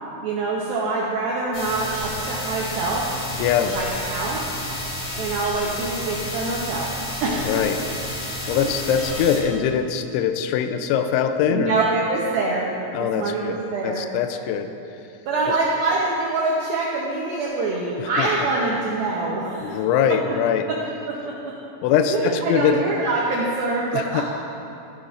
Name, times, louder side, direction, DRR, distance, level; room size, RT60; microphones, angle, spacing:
voice 1, 0.2-3.1 3.7-4.4 5.2-6.9 7.2-7.6 8.5-8.7 11.5-12.7 13.0-14.1 15.3-19.8 20.7-20.8 21.1-21.6 22.1-24.2, right 3 dB, 85° right, -4 dB, 2.1 m, -25 dB
sound 1, 1.5-9.4, left 1 dB, 50° left, 2.1 m, -31 dB
voice 2, 3.3-3.8 7.4-7.8 8.5-11.8 12.9-13.6 13.8-14.7 15.5-15.6 18.0-18.5 19.6-20.7 21.8-22.8 23.9-24.2, left 8 dB, 85° left, 8 dB, 2.9 m, -22 dB
14.0 x 11.0 x 2.5 m, 2.7 s
omnidirectional pair, 5.5 m